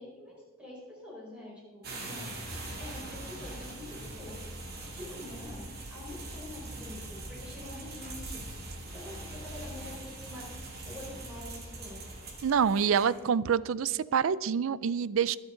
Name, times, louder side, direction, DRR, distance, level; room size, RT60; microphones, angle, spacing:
voice 1, 0.0-2.3 2.8-4.4 4.9-8.4 8.8-10.5 10.8-12.1, left 1 dB, 5° right, -5 dB, 4.5 m, -46 dB
sound 1, 1.8-13.3, right 2 dB, 45° right, 2.3 m, -42 dB
voice 2, 12.4-15.4, right 7 dB, 70° right, 19 dB, 0.4 m, -26 dB
21.5 x 8.1 x 3.8 m, 1.3 s
head